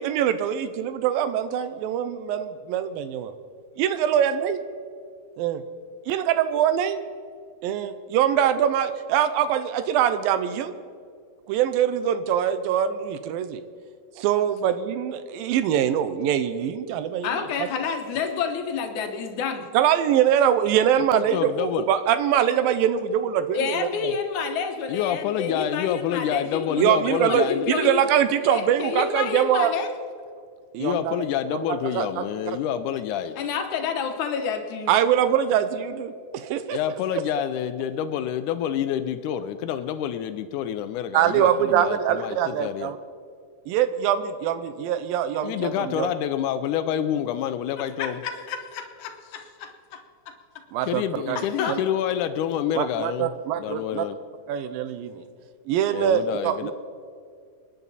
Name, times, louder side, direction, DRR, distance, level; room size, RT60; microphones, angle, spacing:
voice 1, 0.0-3.3 3.8-4.6 5.4-5.6 6.1-7.0 7.6-10.7 11.5-13.6 14.2-17.7 19.7-24.1 26.8-29.7 30.7-31.2 31.8-32.6 34.9-36.8 41.1-43.0 43.7-46.1 50.7-51.8 52.7-54.1 54.5-55.3 55.7-56.7, right 9 dB, 85° right, 11 dB, 2.5 m, -23 dB
voice 2, 17.2-19.7 23.5-28.1 28.4-29.9 33.4-34.9 47.8-50.0 50.3-50.4 51.4-51.7, left 6 dB, 65° left, 5 dB, 2.3 m, -29 dB
voice 3, 21.1-21.9 24.9-27.6 30.8-33.4 36.7-42.9 45.4-48.2 50.9-53.3 53.6-54.2 55.9-56.7, left 10 dB, 80° left, 10 dB, 1.8 m, -27 dB
26.5 x 10.5 x 4.1 m, 2.2 s
omnidirectional pair, 4.1 m